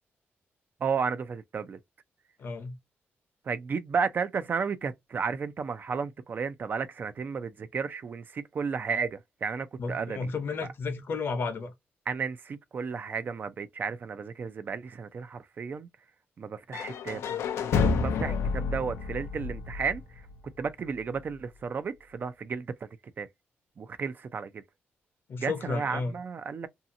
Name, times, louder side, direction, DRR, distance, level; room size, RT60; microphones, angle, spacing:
voice 1, 0.8-1.8 3.5-10.3 12.1-15.9 16.4-17.3 17.7-20.3 20.6-22.7 23.2-23.3 23.8-24.6 25.4-26.7, right 5 dB, 45° right, 0.4 m, -33 dB
voice 2, 2.4-2.8 9.8-11.7 18.2-18.5 25.3-26.2, left 4 dB, 55° left, 0.8 m, -33 dB
sound 1, 16.7-20.6, left 5 dB, 80° left, 0.4 m, -29 dB
2.7 x 2.4 x 2.6 m
cardioid pair, 105°, 5 cm